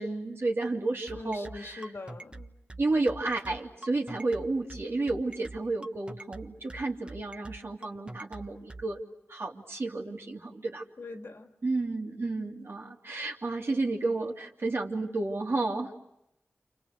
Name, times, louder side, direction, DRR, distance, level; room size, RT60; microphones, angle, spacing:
voice 1, 0.0-1.9 2.8-9.0 9.3-10.8 11.6-16.0, right 2 dB, 60° right, 0 dB, 2.9 m, -31 dB
voice 2, 1.1-2.5 11.0-11.5, left 3 dB, 65° left, 4 dB, 2.1 m, -42 dB
sound 1, 1.1-8.8, right 2 dB, 25° right, 1.2 m, -44 dB
29.5 x 29.0 x 6.5 m, 0.84 s
wide cardioid pair, 60°, 5 cm